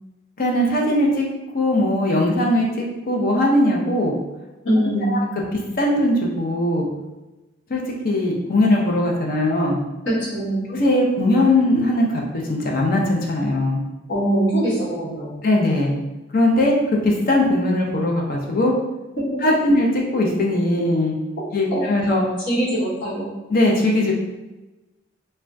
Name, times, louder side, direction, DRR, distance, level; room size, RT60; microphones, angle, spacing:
voice 1, 0.4-1.3 1.5-4.2 5.1-5.2 5.5-6.9 7.7-9.8 10.7-12.2 12.5-13.8 15.4-15.9 16.3-16.8 17.0-18.7 19.4-21.2 21.5-22.2 23.5-24.1, left 1 dB, 45° left, -1 dB, 0.5 m, -20 dB
voice 2, 4.6-5.2 10.0-10.7 14.1-15.4 19.3-19.4 21.7-21.8 22.5-23.3, right 1 dB, 65° left, -7 dB, 1.2 m, -22 dB
3.3 x 2.2 x 2.5 m, 1.1 s
head